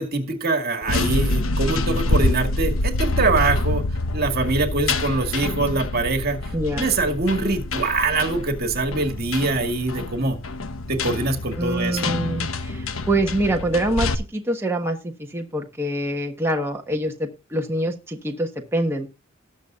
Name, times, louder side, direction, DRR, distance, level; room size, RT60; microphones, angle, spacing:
voice 1, 0.0-3.8 4.1-10.4 10.9-12.1, right 3 dB, 50° right, 4 dB, 2.2 m, -23 dB
sound 1, 0.8-14.1, left 2 dB, 85° left, 1.1 m, -26 dB
voice 2, 6.5-6.9 11.6-19.1, right 1 dB, 10° right, 2 dB, 1.3 m, -25 dB
19.5 x 7.2 x 2.5 m, 0.28 s
head